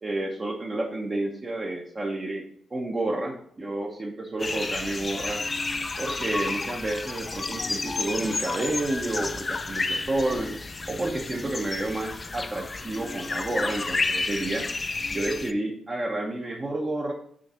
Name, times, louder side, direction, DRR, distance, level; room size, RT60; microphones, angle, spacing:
voice 1, 0.0-2.4 2.7-5.4 6.0-10.6 10.9-14.7 15.1-17.1, right 2 dB, 25° right, 0 dB, 0.8 m, -30 dB
sound 1, 4.4-15.5, left 3 dB, 25° left, 0.4 m, -31 dB
6.3 x 3.2 x 5.6 m, 0.63 s
cardioid pair, 135°, 0 cm